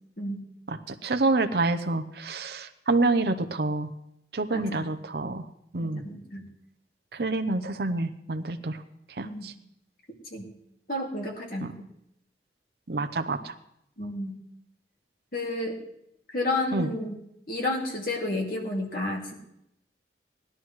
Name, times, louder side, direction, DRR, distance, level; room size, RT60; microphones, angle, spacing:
voice 1, 0.7-3.9 4.3-5.4 5.7-6.0 7.1-8.8 9.2-9.5 11.6-11.7 12.9-13.5 16.7-16.9, right 2 dB, 60° right, 8 dB, 0.7 m, -27 dB
voice 2, 4.5-4.8 5.8-6.4 9.2-9.5 10.3-10.5 10.9-11.7 14.0-14.3 15.3-15.8 16.3-17.2 17.5-19.3, left 2 dB, 55° left, 0 dB, 2.5 m, -31 dB
19.5 x 11.0 x 3.2 m, 0.77 s
head